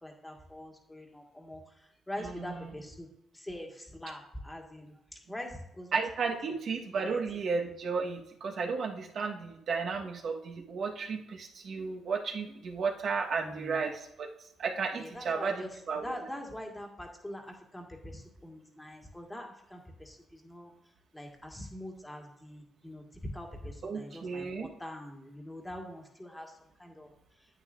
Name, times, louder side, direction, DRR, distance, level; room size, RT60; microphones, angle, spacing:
voice 1, 0.0-3.1 3.3-5.0 5.3-5.9 6.3-6.4 7.0-7.2 13.3-13.8 15.0-20.7 21.1-27.1, left 1 dB, 10° left, 2 dB, 1.8 m, -44 dB
voice 2, 2.2-2.7 5.9-14.3 14.6-16.1 23.8-24.7, right 5 dB, 60° right, 2 dB, 1.3 m, -33 dB
9.6 x 8.6 x 2.6 m, 0.81 s
cardioid pair, 90°, 0 cm